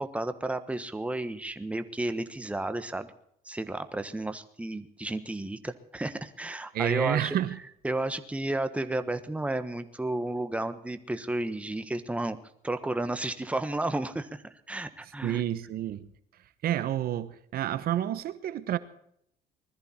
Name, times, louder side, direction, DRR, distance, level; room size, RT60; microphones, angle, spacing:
voice 1, 0.0-3.1 3.4-7.4 7.8-12.4 12.6-15.4, right 2 dB, 5° right, 1.3 m, -32 dB
voice 2, 6.7-7.6 15.2-16.1 16.6-18.8, right 11 dB, 65° right, 1.1 m, -29 dB
20.5 x 14.0 x 4.4 m
cardioid pair, 110°, 17 cm